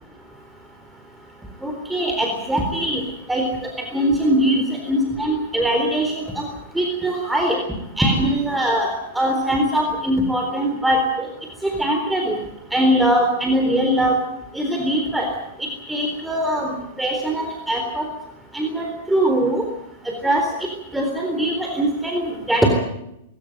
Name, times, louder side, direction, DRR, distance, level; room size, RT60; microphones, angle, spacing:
voice 1, 1.6-3.0 3.3-6.5 6.8-7.6 8.0-11.3 11.6-12.4 12.7-14.2 14.5-15.3 15.9-18.1 18.5-19.6 20.2-22.8, right 1 dB, 5° right, 2 dB, 3.9 m, -21 dB
21.0 x 17.0 x 9.1 m, 0.82 s
figure-of-eight pair, 100°, 0 cm